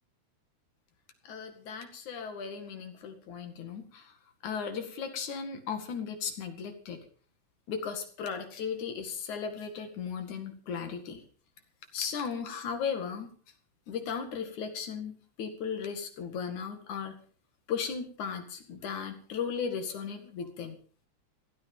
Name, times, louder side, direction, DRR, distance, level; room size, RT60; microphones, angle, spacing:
voice 1, 1.2-4.1 4.4-7.0 7.7-11.2 11.9-13.3 13.9-17.2 17.7-20.8, left 6 dB, 70° left, 7 dB, 3.4 m, -36 dB
16.5 x 13.0 x 5.4 m, 0.43 s
omnidirectional pair, 3.6 m